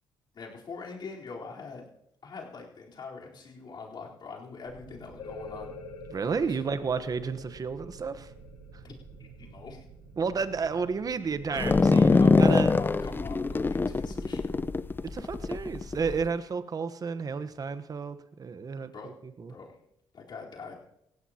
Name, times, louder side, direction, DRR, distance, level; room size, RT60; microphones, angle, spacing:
voice 1, 0.3-1.9 2.2-5.7 6.3-6.6 8.8-9.8 11.5-14.7 18.9-19.1 19.4-19.7 20.1-20.8, left 4 dB, 55° left, -3 dB, 4.0 m, -43 dB
sound 1, 4.6-14.7, right 5 dB, 75° right, 5.4 m, -50 dB
sound 2, 5.1-10.5, left 4 dB, 70° left, 4.8 m, -47 dB
voice 2, 6.1-8.3 10.2-12.8 15.0-19.5, right 5 dB, 40° right, 11 dB, 1.1 m, -32 dB
sound 3, 11.6-16.2, left 3 dB, 20° left, 0.5 m, -23 dB
18.0 x 16.0 x 2.9 m, 0.82 s
supercardioid pair, 65°, 9 cm